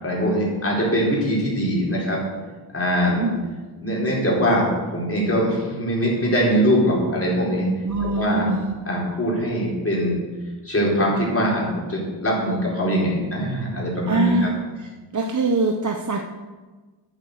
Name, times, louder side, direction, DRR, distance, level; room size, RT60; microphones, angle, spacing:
voice 1, 0.0-2.2 2.7-3.2 3.8-7.7 8.2-8.4 8.9-10.2 10.6-14.5, equal, 30° left, -4 dB, 4.2 m, -22 dB
voice 2, 7.8-8.7 14.1-14.9 15.1-16.2, right 2 dB, 40° right, 3 dB, 0.9 m, -23 dB
12.5 x 8.2 x 6.7 m, 1.3 s
wide cardioid pair, 160°, 44 cm